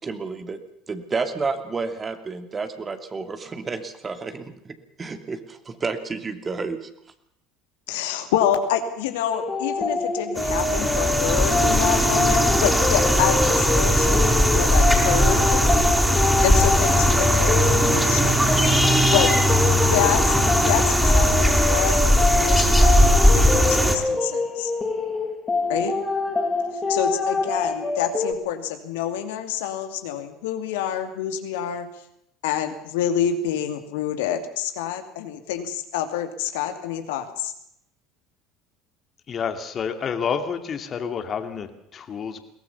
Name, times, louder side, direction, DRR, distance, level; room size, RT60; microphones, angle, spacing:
voice 1, 0.0-0.6 0.9-6.9, right 4 dB, 30° right, 8 dB, 2.6 m, -30 dB
voice 2, 7.9-15.6 16.4-18.5 19.1-19.4 19.6-22.0 22.3-24.7 25.7-26.0 26.9-31.9 32.4-37.5, left 9 dB, 75° left, 7 dB, 2.4 m, -27 dB
sound 1, 9.3-28.3, left 3 dB, 25° left, 4.1 m, -26 dB
sound 2, 10.4-24.0, equal, ahead, 4.7 m, -19 dB
voice 3, 39.3-42.4, left 6 dB, 40° left, 7 dB, 2.5 m, -29 dB
22.0 x 18.0 x 7.1 m, 0.74 s
hypercardioid pair, 70°, 0 cm